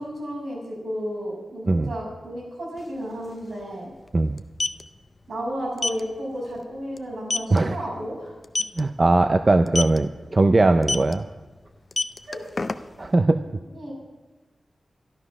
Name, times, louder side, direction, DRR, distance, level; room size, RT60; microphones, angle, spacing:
voice 1, 0.0-3.9 5.3-8.3 12.3-12.4 13.7-13.9, equal, 70° right, -4 dB, 6.3 m, -32 dB
sound 1, 2.8-2.9 3.1-3.3 4.3-4.8 5.8-6.0 6.4-6.6 7.0-7.1 7.3-7.6 8.4-8.8 9.7-10.0 10.8-11.1 11.8-13.1, left 3 dB, 35° left, 0.6 m, -25 dB
voice 2, 8.8-11.2 13.0-13.4, right 2 dB, 35° right, 8 dB, 0.5 m, -19 dB
13.0 x 12.0 x 6.0 m, 1.2 s
wide cardioid pair, 130°, 0 cm